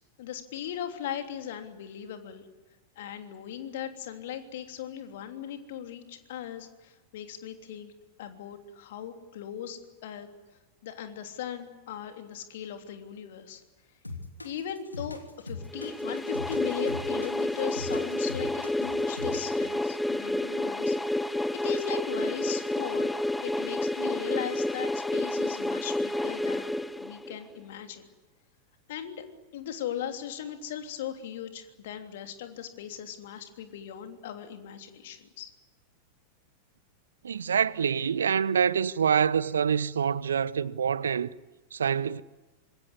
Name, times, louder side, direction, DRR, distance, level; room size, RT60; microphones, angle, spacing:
voice 1, 0.2-2.5 2.9-7.9 8.2-10.3 10.8-13.6 14.4-21.0 21.3-23.1 23.4-28.1 28.9-29.3 29.5-35.5, left 9 dB, 55° left, 3.1 m, -38 dB
sound 1, 14.0-19.7, left 3 dB, 85° left, 3.1 m, -40 dB
sound 2, 15.7-27.5, left 1 dB, 5° left, 1.0 m, -30 dB
voice 2, 37.2-41.3 41.7-42.2, right 7 dB, 70° right, 0.8 m, -26 dB
26.5 x 21.0 x 9.8 m
figure-of-eight pair, 90°, 0 cm